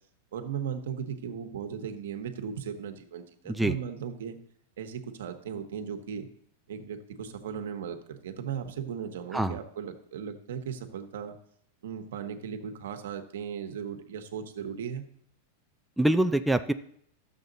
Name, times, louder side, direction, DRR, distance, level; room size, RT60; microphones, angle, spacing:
voice 1, 0.3-4.4 4.8-6.3 6.7-11.4 11.8-15.1, right 7 dB, 80° right, 7 dB, 1.2 m, -37 dB
voice 2, 16.0-16.7, right 1 dB, ahead, 7 dB, 0.4 m, -25 dB
12.5 x 7.1 x 4.0 m, 0.68 s
supercardioid pair, 145°, 0 cm